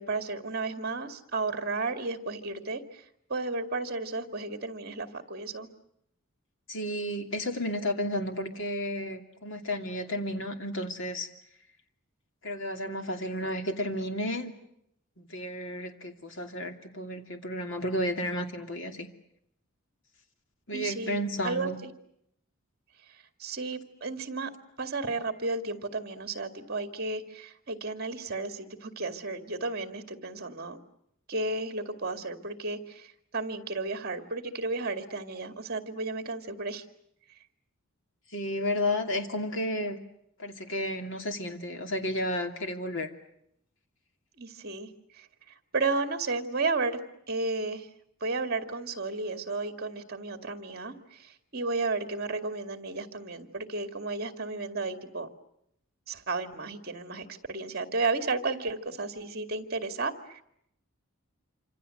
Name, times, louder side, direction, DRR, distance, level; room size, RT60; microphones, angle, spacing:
voice 1, 0.0-3.0 3.3-5.7 20.7-21.9 23.4-24.5 24.8-30.8 31.3-36.8 44.4-47.0 47.3-47.9 48.2-55.3 56.1-60.4, right 3 dB, 45° right, 7 dB, 2.3 m, -33 dB
voice 2, 6.7-11.3 12.4-14.5 15.2-19.1 20.7-21.8 38.3-40.0 40.4-43.1, left 1 dB, 60° left, 5 dB, 2.7 m, -32 dB
27.0 x 26.0 x 7.8 m, 0.76 s
head